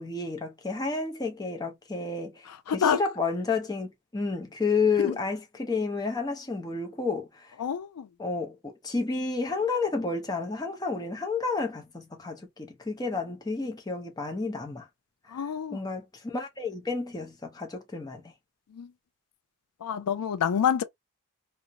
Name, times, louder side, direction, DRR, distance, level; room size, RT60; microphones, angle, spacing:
voice 1, 0.0-7.5 8.2-14.9 15.4-18.2, left 4 dB, 15° left, 0.5 m, -31 dB
voice 2, 2.7-3.0 5.0-5.1 7.6-8.1 15.3-15.8 18.8-18.9 19.8-20.8, left 8 dB, 90° left, 0.4 m, -27 dB
2.5 x 2.0 x 2.7 m
head